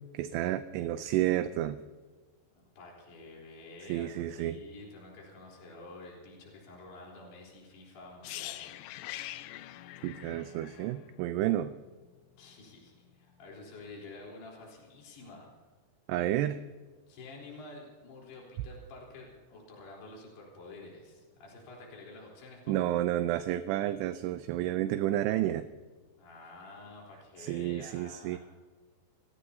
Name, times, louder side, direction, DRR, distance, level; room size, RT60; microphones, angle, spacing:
voice 1, 0.1-1.8 3.9-4.6 10.0-11.7 16.1-16.6 22.7-25.6 27.4-28.4, right 13 dB, 80° right, 10 dB, 2.6 m, -30 dB
voice 2, 2.5-8.7 12.4-15.5 17.1-22.9 26.2-28.4, left 2 dB, 65° left, -2 dB, 5.8 m, -49 dB
sound 1, 8.2-12.1 12.4-12.6, left 15 dB, 85° left, 2.9 m, -44 dB
30.0 x 17.0 x 2.8 m, 1.4 s
omnidirectional pair, 5.1 m